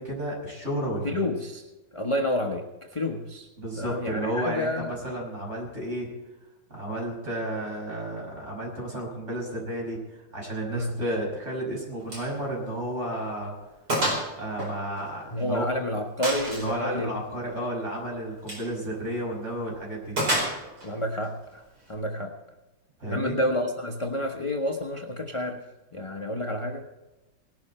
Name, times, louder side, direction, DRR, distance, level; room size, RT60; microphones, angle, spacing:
voice 1, 0.0-1.2 3.6-6.1 6.7-10.0 10.3-13.5 14.4-15.6 16.5-20.2 23.0-23.4, right 1 dB, 35° right, -1 dB, 6.3 m, -32 dB
voice 2, 1.0-1.6 1.9-3.5 3.8-4.9 10.7-10.9 15.3-17.1 20.8-21.6 21.9-22.3 23.1-25.6 25.9-26.8, left 1 dB, 20° left, 2 dB, 0.9 m, -29 dB
Gunshot gunfire, 12.1-12.3 12.6-12.8 13.2-13.3 13.9-14.3 14.6-15.6 16.2-16.7 18.4-18.7 20.2-20.9, right 1 dB, 65° right, 5.3 m, -28 dB
19.0 x 12.0 x 4.4 m, 1.1 s
omnidirectional pair, 1.9 m